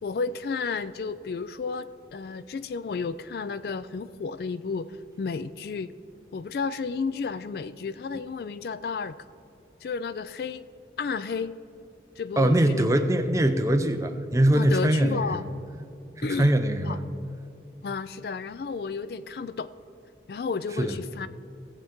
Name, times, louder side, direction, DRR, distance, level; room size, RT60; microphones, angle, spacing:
voice 1, 0.0-4.9 5.2-5.9 6.3-9.2 9.8-10.7 11.0-11.5 12.2-13.0 14.5-15.4 16.2-16.5 16.8-17.0 17.8-19.7 20.3-21.3, left 5 dB, 55° left, 14 dB, 0.3 m, -32 dB
voice 2, 12.4-15.5 16.2-17.0 20.8-21.0, right 1 dB, 15° right, 7 dB, 0.5 m, -22 dB
17.0 x 7.4 x 3.6 m, 2.7 s
head